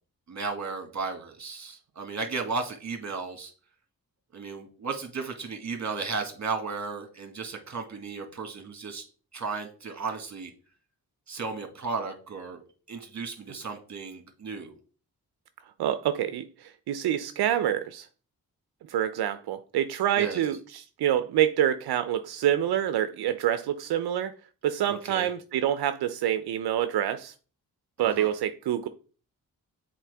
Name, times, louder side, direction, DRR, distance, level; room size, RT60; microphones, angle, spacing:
voice 1, 0.3-3.5 4.3-9.0 9.3-10.5 11.3-12.6 12.9-14.7 20.2-20.4 24.9-25.3 28.0-28.3, right 4 dB, 45° right, 1.7 m, -34 dB
voice 2, 15.8-18.1 18.9-24.3 24.6-27.3 28.0-28.9, right 11 dB, 85° right, 0.5 m, -27 dB
7.4 x 4.3 x 3.4 m
cardioid pair, 60°, 37 cm